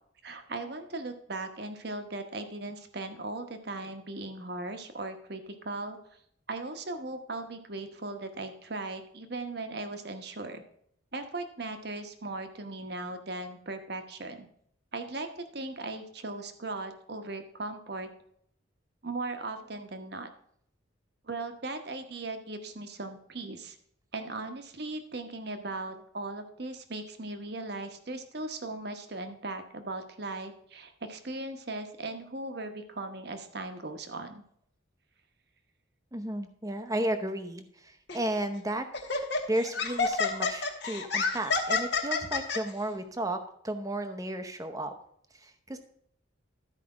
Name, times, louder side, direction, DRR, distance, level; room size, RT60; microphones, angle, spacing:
voice 1, 0.2-6.0 6.5-10.6 11.1-14.5 14.9-18.1 19.0-20.3 21.2-23.8 24.1-34.4, right 2 dB, 55° right, 7 dB, 1.0 m, -38 dB
voice 2, 36.1-38.9 39.5-44.9 45.3-45.8, right 1 dB, 15° right, 8 dB, 0.7 m, -33 dB
Laughter, 38.1-38.3 38.9-42.6, left 4 dB, 55° left, 1.2 m, -29 dB
12.5 x 4.9 x 4.8 m, 0.69 s
head